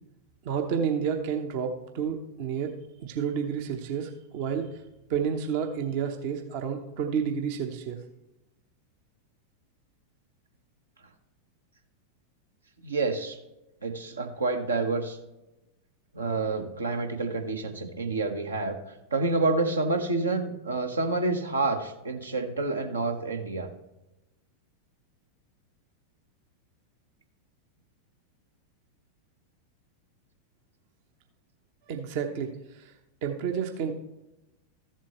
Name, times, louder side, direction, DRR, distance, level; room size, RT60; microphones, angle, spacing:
voice 1, 0.4-2.7 3.0-4.7 5.1-8.0 31.9-32.9 33.2-33.9, right 7 dB, 50° right, 5 dB, 0.8 m, -30 dB
voice 2, 12.8-13.4 13.8-15.2 16.1-18.8 19.1-23.7, right 3 dB, 75° right, 5 dB, 1.1 m, -28 dB
14.0 x 7.4 x 3.0 m, 0.96 s
figure-of-eight pair, 90°, 0 cm